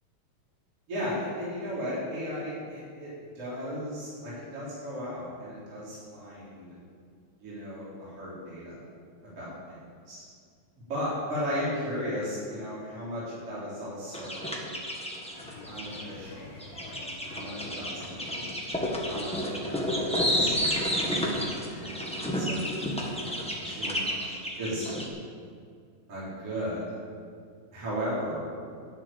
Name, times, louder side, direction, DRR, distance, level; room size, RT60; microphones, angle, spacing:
voice 1, 0.9-3.1 3.4-6.7 7.4-8.8 9.2-9.8 10.1-10.2 10.8-14.5 15.6-17.0 17.3-17.9 18.2-18.5 19.1-20.5 21.2-25.0 26.1-27.0 27.7-28.5, equal, 50° right, -10 dB, 4.7 m, -36 dB
sound 1, 14.1-16.0 16.6-25.1, equal, 10° left, 0.3 m, -30 dB
sound 2, 15.3-24.1, left 2 dB, 40° left, 1.8 m, -47 dB
12.0 x 6.9 x 8.7 m, 2.2 s
omnidirectional pair, 3.4 m